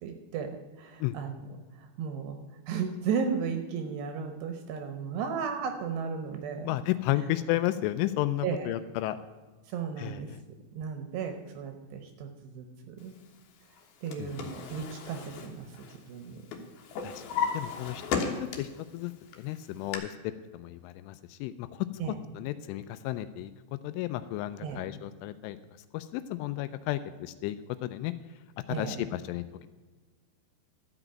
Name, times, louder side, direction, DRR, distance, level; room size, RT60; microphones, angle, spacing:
voice 1, 0.0-1.5 1.8-2.4 2.7-6.7 8.4-8.7 9.7-10.3 10.7-13.1 14.0-15.7 16.1-16.4 22.0-22.2 24.6-24.9 28.7-29.1, right 6 dB, 75° right, 6 dB, 2.7 m, -35 dB
voice 2, 6.6-9.2 10.0-10.4 14.2-14.3 17.0-18.0 18.3-18.7 18.9-19.1 19.4-20.1 20.5-21.9 22.3-23.5 23.8-25.6 25.9-27.6 27.8-28.1 28.7-29.4, left 15 dB, 85° left, 12 dB, 3.0 m, -33 dB
Drawer open or close, 13.8-16.2 16.5-18.9 19.3-20.0, left 6 dB, 65° left, 2.7 m, -35 dB
13.0 x 6.1 x 8.9 m, 1.3 s
omnidirectional pair, 5.7 m